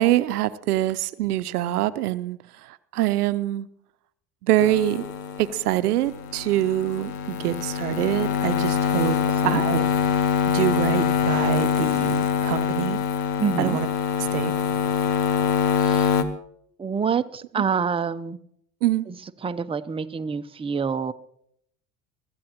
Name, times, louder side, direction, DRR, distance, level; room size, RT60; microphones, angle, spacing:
voice 1, 0.0-2.4 2.9-3.7 4.4-5.0 5.4-9.2 9.4-9.8 10.5-13.0 13.6-13.9 14.3-14.5 18.8-19.0, right 14 dB, 85° right, 15 dB, 0.6 m, -24 dB
sound 1, 4.6-16.2, left 7 dB, 85° left, 1.2 m, -24 dB
voice 2, 13.4-13.8 15.8-16.1 16.8-18.4 19.1-19.2 19.4-21.1, right 6 dB, 10° right, 9 dB, 0.6 m, -27 dB
23.5 x 13.0 x 2.9 m, 0.73 s
hypercardioid pair, 65°, 45 cm